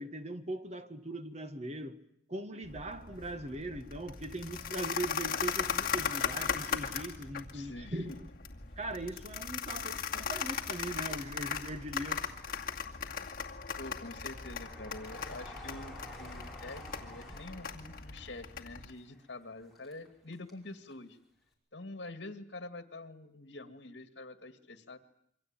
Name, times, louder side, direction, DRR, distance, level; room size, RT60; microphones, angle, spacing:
voice 1, 0.0-2.0 2.3-8.3 8.8-12.2, right 1 dB, 35° right, 1.6 m, -40 dB
sound 1, 2.6-18.9, left 7 dB, 50° left, 2.4 m, -38 dB
voice 2, 7.5-8.2 13.8-21.2 21.7-25.0, left 2 dB, 75° left, 2.2 m, -46 dB
Train, 8.7-9.9 10.4-11.3 11.9-20.6 20.9-21.0, left 2 dB, ahead, 5.8 m, -52 dB
27.5 x 24.0 x 9.0 m
head